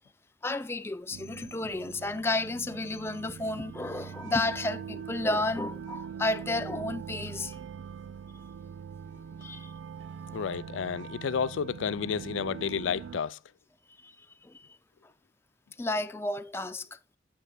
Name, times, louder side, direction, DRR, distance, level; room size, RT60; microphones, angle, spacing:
voice 1, 0.4-7.6 9.4-9.7 14.0-14.8 15.8-16.9, left 2 dB, 15° left, 0.3 m, -32 dB
sound 1, 1.1-13.2, right 7 dB, 85° right, 0.4 m, -42 dB
voice 2, 10.3-13.4, left 7 dB, 90° left, 0.4 m, -31 dB
9.2 x 8.1 x 2.3 m
head